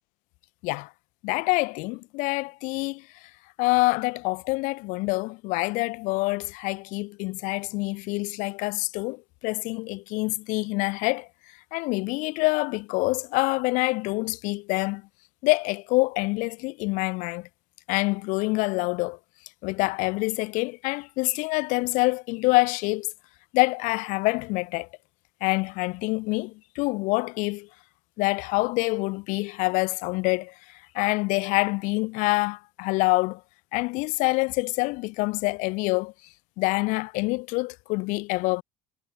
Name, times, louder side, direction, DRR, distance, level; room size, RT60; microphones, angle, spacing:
voice 1, 1.2-3.0 3.6-11.3 11.7-15.0 15.4-17.5 17.9-19.2 19.6-23.1 23.5-24.9 25.4-27.7 28.2-30.5 30.9-33.4 33.7-36.1 36.6-38.6, left 25 dB, 65° left, 3.7 m, -26 dB
cardioid pair, 175°, 14 cm